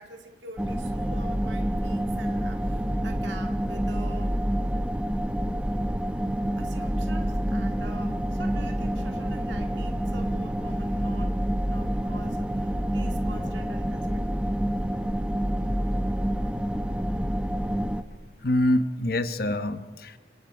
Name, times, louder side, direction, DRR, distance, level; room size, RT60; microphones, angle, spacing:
voice 1, 0.0-4.4 6.6-11.4 11.6-14.3, right 2 dB, 75° right, 5 dB, 2.0 m, -46 dB
sound 1, 0.6-18.0, equal, 5° right, 0.8 m, -28 dB
voice 2, 18.4-20.2, left 1 dB, 50° left, 11 dB, 1.2 m, -25 dB
29.0 x 25.5 x 5.0 m, 1.3 s
head